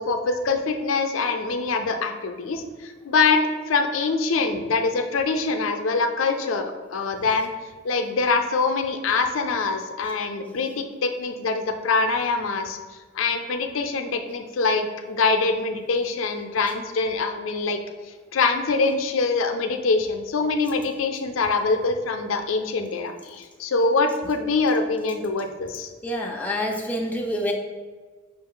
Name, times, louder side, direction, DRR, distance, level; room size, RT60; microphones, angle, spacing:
voice 1, 0.0-7.5 7.8-12.8 13.1-17.8 18.3-25.9, left 4 dB, 90° left, 5 dB, 0.4 m, -24 dB
voice 2, 26.0-27.5, equal, 10° left, -1 dB, 0.4 m, -27 dB
5.2 x 2.3 x 3.7 m, 1.4 s
head